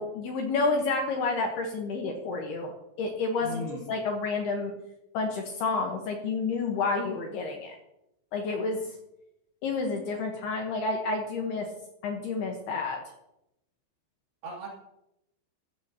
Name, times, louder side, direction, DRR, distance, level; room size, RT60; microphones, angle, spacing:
voice 1, 0.0-2.7 3.0-4.7 5.1-7.8 8.3-8.8 9.6-11.7 12.0-13.0, left 3 dB, 70° left, 2 dB, 2.8 m, -29 dB
voice 2, 3.4-3.8 14.4-14.7, equal, 55° right, -3 dB, 4.7 m, -36 dB
15.0 x 13.5 x 2.9 m, 0.86 s
omnidirectional pair, 5.7 m